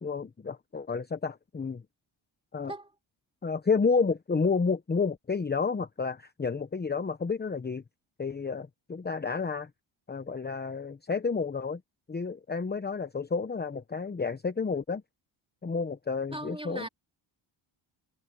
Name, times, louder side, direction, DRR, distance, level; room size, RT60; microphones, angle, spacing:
voice 1, 0.0-1.8 2.5-2.7 3.4-7.8 8.2-9.7 10.1-11.8 12.1-15.0 15.6-16.9, left 5 dB, 20° left, 1.0 m, -30 dB
voice 2, 16.3-16.9, right 1 dB, 10° right, 3.5 m, -38 dB
cardioid pair, 75°, 47 cm